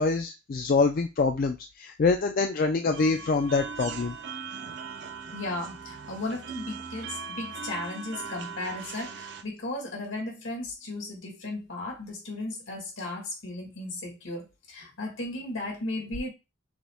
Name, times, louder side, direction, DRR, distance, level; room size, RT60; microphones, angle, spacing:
voice 1, 0.0-4.2, left 4 dB, 45° left, 0.4 m, -25 dB
sound 1, 2.9-9.4, right 5 dB, 60° right, 0.5 m, -39 dB
voice 2, 5.3-16.3, left 2 dB, 75° left, 1.8 m, -35 dB
6.2 x 2.2 x 3.4 m
head